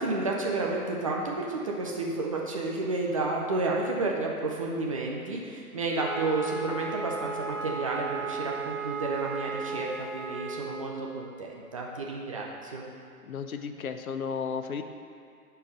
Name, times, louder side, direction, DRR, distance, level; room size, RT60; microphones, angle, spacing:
voice 1, 0.0-12.9, right 3 dB, 25° right, -2 dB, 0.5 m, -31 dB
Wind instrument woodwind instrument, 5.9-10.7, right 4 dB, 40° right, 1.2 m, -35 dB
voice 2, 13.2-14.8, left 6 dB, 65° left, 7 dB, 0.8 m, -34 dB
10.5 x 4.6 x 5.3 m, 2.3 s
figure-of-eight pair, 130°, 46 cm